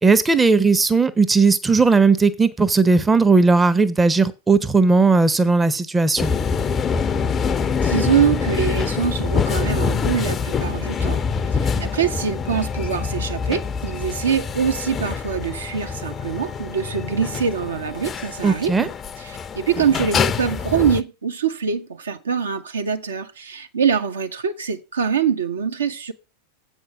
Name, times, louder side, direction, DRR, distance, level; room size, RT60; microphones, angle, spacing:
voice 1, 0.0-6.3 18.4-18.9, right 4 dB, 10° right, 0.8 m, -17 dB
sound 1, 6.2-21.0, left 5 dB, 20° left, 0.6 m, -25 dB
voice 2, 7.8-11.2 11.6-18.9 19.2-26.1, right 7 dB, 70° right, 1.1 m, -24 dB
8.0 x 5.2 x 7.2 m
figure-of-eight pair, 90°, 0 cm